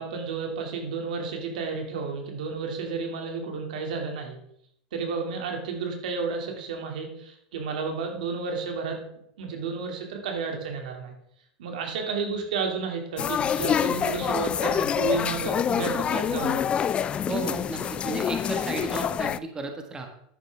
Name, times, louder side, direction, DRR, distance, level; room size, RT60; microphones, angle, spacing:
voice 1, 0.0-4.4 4.9-11.1 11.6-16.6, right 5 dB, 80° right, 3 dB, 2.5 m, -32 dB
sound 1, 13.2-19.4, left 8 dB, 25° left, 0.3 m, -26 dB
voice 2, 17.3-20.1, right 2 dB, 15° right, 4 dB, 1.5 m, -33 dB
10.5 x 9.0 x 3.5 m, 0.72 s
supercardioid pair, 120°, 4 cm